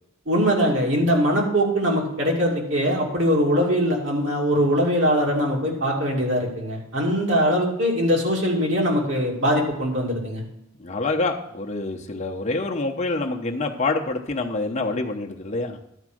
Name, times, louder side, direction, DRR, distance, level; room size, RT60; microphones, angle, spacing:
voice 1, 0.3-10.4, equal, 65° right, -2 dB, 2.8 m, -22 dB
voice 2, 10.8-15.8, left 3 dB, 35° left, 1 dB, 0.9 m, -26 dB
12.0 x 4.8 x 6.3 m, 0.83 s
head